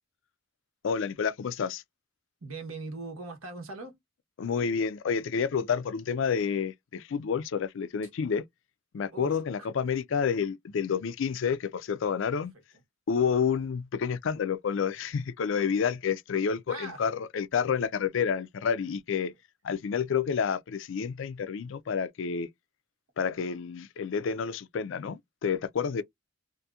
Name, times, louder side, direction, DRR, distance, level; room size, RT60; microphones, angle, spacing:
voice 1, 0.8-1.8 4.4-8.4 8.9-12.5 13.1-19.3 19.6-22.5 23.2-26.0, left 6 dB, 65° left, 0.4 m, -29 dB
voice 2, 2.4-4.0 9.1-9.7 16.7-17.0, right 3 dB, 85° right, 1.1 m, -40 dB
2.8 x 2.5 x 2.3 m
head